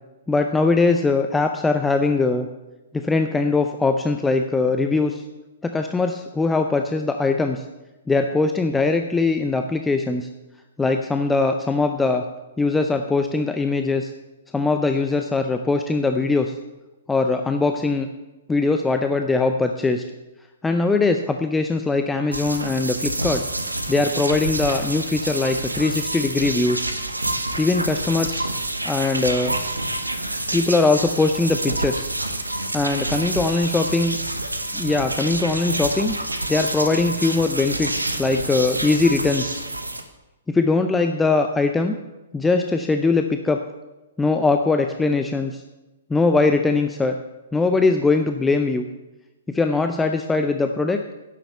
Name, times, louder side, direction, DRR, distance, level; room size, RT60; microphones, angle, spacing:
voice 1, 0.3-2.5 2.9-5.2 5.6-7.6 8.1-10.3 10.8-12.2 12.6-14.1 14.5-16.5 17.1-18.1 18.5-20.0 20.6-23.4 23.9-26.9 27.6-28.5 28.8-29.6 30.5-32.1 32.7-34.2 34.7-36.1 36.5-39.6 40.5-42.0 42.3-43.6 44.2-45.6 46.1-47.2 47.5-48.9 49.5-51.0, left 3 dB, 10° left, 6 dB, 0.6 m, -21 dB
sound 1, 22.3-40.0, right 1 dB, 85° right, 1.1 m, -27 dB
11.0 x 7.1 x 6.8 m, 1.0 s
figure-of-eight pair, 115°, 0 cm